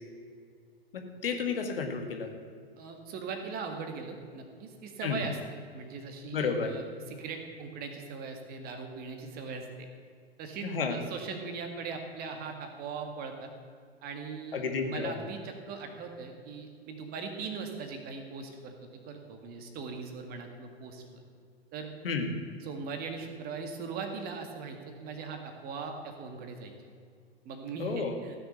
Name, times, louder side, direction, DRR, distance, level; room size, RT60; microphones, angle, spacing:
voice 1, 0.9-2.3 5.0-5.2 6.3-6.7 10.6-11.0 14.5-15.1 22.0-22.3 27.8-28.2, left 5 dB, 60° left, 4 dB, 2.0 m, -31 dB
voice 2, 2.8-5.4 5.7-9.9 10.4-13.5 14.0-18.8 19.1-21.2 21.7-21.9 22.6-26.7 27.5-28.3, right 5 dB, 30° right, 5 dB, 1.9 m, -40 dB
15.5 x 7.0 x 8.1 m, 2.2 s
figure-of-eight pair, 100°, 31 cm